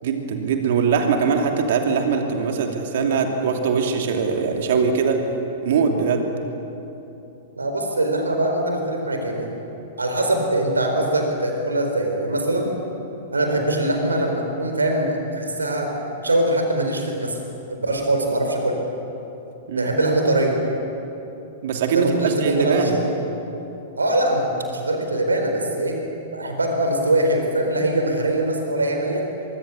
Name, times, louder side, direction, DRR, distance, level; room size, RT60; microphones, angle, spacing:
voice 1, 0.0-5.2 5.6-6.3 19.7-19.9 21.6-23.0, right 5 dB, 55° right, 3 dB, 2.8 m, -21 dB
voice 2, 7.6-9.5 10.0-12.7 13.3-15.9 16.2-17.4 17.7-18.8 19.7-20.6 21.9-23.0 24.0-26.0 26.3-29.3, right 1 dB, 75° right, 3 dB, 4.3 m, -22 dB
24.0 x 23.5 x 7.1 m, 3.0 s
figure-of-eight pair, 100°, 0 cm